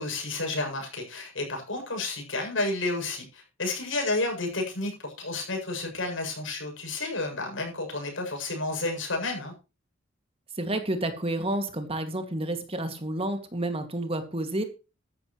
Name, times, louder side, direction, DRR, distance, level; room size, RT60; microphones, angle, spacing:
voice 1, 0.0-9.5, left 2 dB, 75° left, 3 dB, 7.6 m, -31 dB
voice 2, 10.6-14.6, right 1 dB, 30° right, 7 dB, 2.3 m, -30 dB
14.0 x 12.0 x 3.2 m, 0.31 s
head